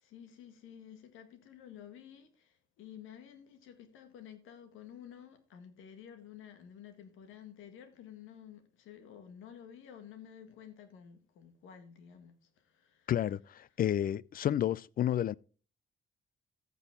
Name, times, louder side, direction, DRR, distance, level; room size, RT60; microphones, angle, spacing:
voice 1, 0.0-12.4 12.6-13.1, left 9 dB, 90° left, 1.8 m, -52 dB
voice 2, 13.1-15.4, left 11 dB, 45° left, 0.4 m, -31 dB
14.5 x 6.1 x 3.7 m
cardioid pair, 90°, 20 cm